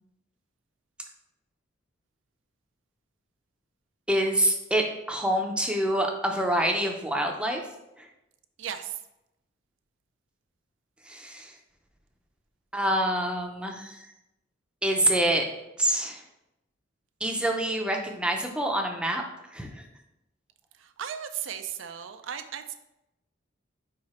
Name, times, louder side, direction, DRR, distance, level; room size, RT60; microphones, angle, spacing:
voice 1, 4.1-7.6 8.0-8.1 11.1-11.5 12.7-14.0 14.8-15.5 15.8-16.2 17.2-19.2 19.5-19.9, right 1 dB, 5° right, 2 dB, 0.6 m, -26 dB
voice 2, 8.6-8.9 20.8-22.7, right 9 dB, 75° right, 8 dB, 0.4 m, -36 dB
4.9 x 4.8 x 4.2 m, 0.89 s
head